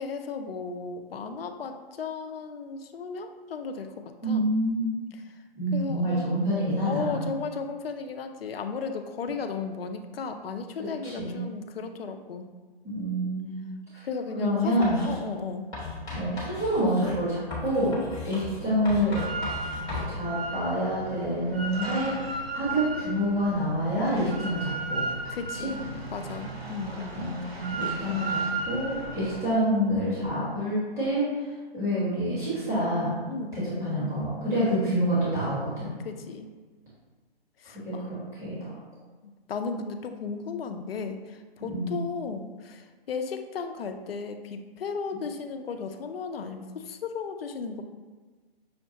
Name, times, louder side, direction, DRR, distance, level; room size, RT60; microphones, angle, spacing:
voice 1, 0.0-4.5 5.7-6.2 6.9-12.5 14.0-15.7 25.3-27.1 33.3-34.0 34.4-34.9 36.0-36.5 37.6-38.1 39.2-47.8, left 5 dB, 70° left, 6 dB, 0.5 m, -35 dB
voice 2, 4.2-5.1 5.5-7.2 11.0-11.4 12.8-13.6 14.4-15.0 16.2-19.2 19.9-25.0 25.6-25.7 27.1-31.4 31.7-33.2 33.5-36.0 37.8-38.7 41.7-42.0, equal, 10° right, -12 dB, 1.3 m, -27 dB
Writing, 14.8-15.2 15.7-20.1, left 3 dB, 10° left, 1.0 m, -36 dB
Drill, 19.1-29.5, right 3 dB, 80° right, 0.8 m, -35 dB
6.3 x 2.1 x 2.8 m, 1.3 s
hypercardioid pair, 145°, 31 cm